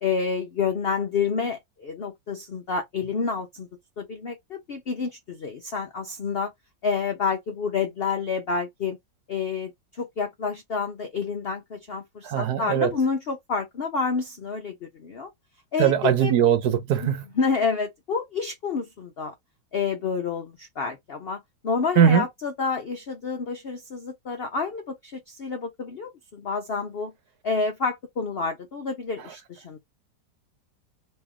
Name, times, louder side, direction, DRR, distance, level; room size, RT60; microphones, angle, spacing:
voice 1, 0.0-3.7 4.0-6.5 6.8-9.0 9.3-15.3 15.7-16.4 17.0-19.3 19.7-27.1 27.4-29.8, left 5 dB, 70° left, 0.5 m, -29 dB
voice 2, 12.2-12.9 15.8-17.2 22.0-22.2, right 9 dB, 70° right, 1.2 m, -20 dB
3.1 x 2.7 x 3.5 m
omnidirectional pair, 1.9 m